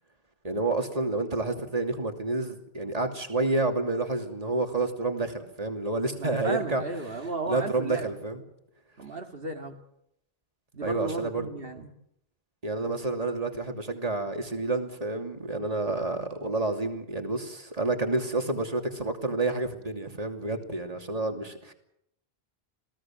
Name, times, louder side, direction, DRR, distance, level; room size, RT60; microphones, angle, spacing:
voice 1, 0.4-6.8 7.5-8.4 10.8-11.5 12.6-21.7, right 2 dB, 35° right, 5 dB, 2.9 m, -29 dB
voice 2, 6.2-8.1 9.0-9.8 10.7-11.9, right 3 dB, 65° right, 3 dB, 2.3 m, -34 dB
28.0 x 17.5 x 7.5 m, 0.77 s
omnidirectional pair, 1.1 m